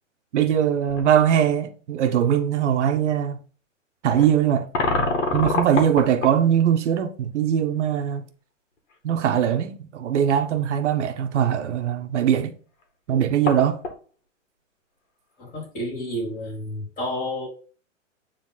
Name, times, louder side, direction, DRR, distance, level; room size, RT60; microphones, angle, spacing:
voice 1, 0.3-3.4 4.0-4.7 5.3-8.2 9.0-12.5 13.1-13.8, right 9 dB, 60° right, 1.2 m, -21 dB
sound 1, 0.9-1.1 1.9-2.0 4.1-6.4 8.9-9.0 9.3-9.4 12.8-12.9 13.1-14.0, left 3 dB, 65° left, 2.3 m, -26 dB
voice 2, 15.4-17.5, left 1 dB, 25° left, 3.8 m, -30 dB
9.3 x 3.7 x 3.9 m
hypercardioid pair, 145°, 39 cm